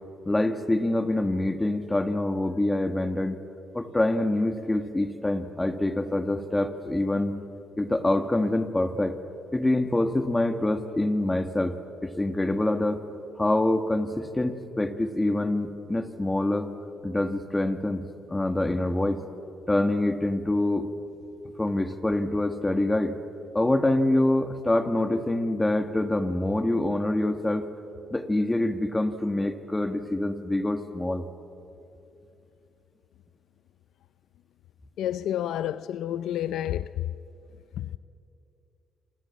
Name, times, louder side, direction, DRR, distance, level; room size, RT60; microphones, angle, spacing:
voice 1, 0.3-3.4 3.7-7.3 7.8-9.2 9.5-11.8 12.0-13.0 13.4-16.7 17.0-19.2 19.7-20.9 21.6-23.1 23.5-27.7 28.1-31.2, left 1 dB, 15° left, 2.0 m, -25 dB
voice 2, 35.0-36.9 37.8-38.0, left 11 dB, 80° left, 0.5 m, -29 dB
27.5 x 26.0 x 7.3 m
cardioid pair, 90°, 0 cm